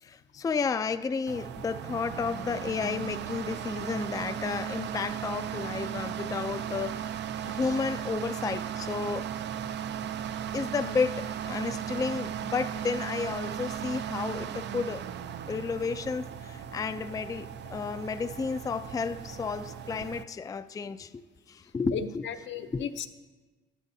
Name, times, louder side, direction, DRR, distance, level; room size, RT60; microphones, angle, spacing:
voice 1, 0.0-7.1 7.4-9.3 10.5-15.1 15.5-21.1 21.5-22.2 22.7-22.8, left 5 dB, 20° left, 0.3 m, -32 dB
sound 1, 1.3-20.2, right 9 dB, 60° right, 0.5 m, -36 dB
voice 2, 21.9-23.1, left 7 dB, 70° left, 0.7 m, -35 dB
12.0 x 12.0 x 2.7 m
cardioid pair, 90°, 20 cm